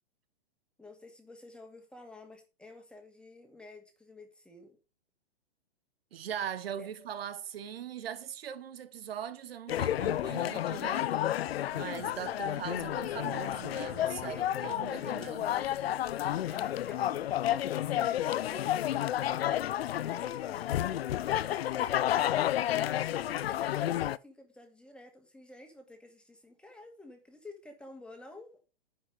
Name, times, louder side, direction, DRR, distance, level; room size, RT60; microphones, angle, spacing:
voice 1, 0.8-4.8 6.8-7.1 14.3-15.7 16.5-21.1 21.7-28.7, left 2 dB, 5° left, 2.1 m, -51 dB
voice 2, 6.1-11.2 11.7-15.5, right 9 dB, 70° right, 1.4 m, -40 dB
sound 1, 9.7-24.2, left 12 dB, 70° left, 0.6 m, -31 dB
11.0 x 5.4 x 5.2 m
hypercardioid pair, 135°, 31 cm